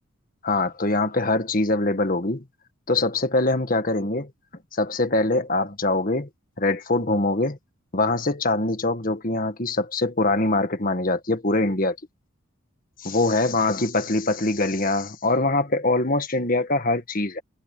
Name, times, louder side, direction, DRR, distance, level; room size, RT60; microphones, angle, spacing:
voice 1, 0.4-2.4 2.9-4.3 4.7-6.3 6.6-7.6 7.9-12.0 13.0-17.4, left 2 dB, 40° left, 1.7 m, -23 dB
head